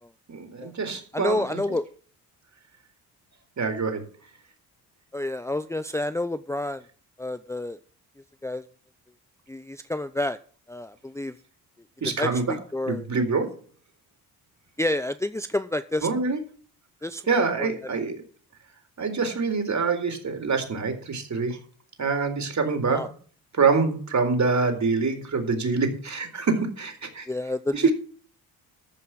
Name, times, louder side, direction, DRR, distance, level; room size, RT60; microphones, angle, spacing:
voice 1, 0.3-1.6 3.6-4.0 12.0-12.5 12.9-13.6 16.0-16.4 17.3-18.2 19.0-21.6 22.0-23.0 23.5-27.3 27.7-27.9, right 4 dB, 40° right, 6 dB, 4.1 m, -25 dB
voice 2, 1.1-1.9 5.1-6.8 7.2-7.8 8.4-8.6 9.5-10.4 10.7-11.3 12.0-13.1 14.8-16.1 17.0-17.2 17.6-17.7 22.9-23.1 27.3-27.9, left 1 dB, 5° left, 11 dB, 0.7 m, -29 dB
14.5 x 5.6 x 7.6 m, 0.42 s
supercardioid pair, 65°, 42 cm